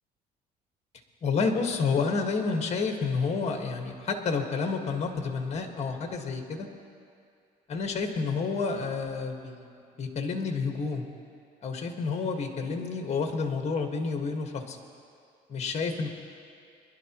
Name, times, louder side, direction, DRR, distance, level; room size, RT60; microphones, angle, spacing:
voice 1, 1.2-6.7 7.7-9.6 10.0-11.1 11.6-14.8 15.5-16.1, left 4 dB, 40° left, 4 dB, 1.6 m, -29 dB
24.5 x 11.5 x 3.0 m, 2.4 s
cardioid pair, 110°, 17 cm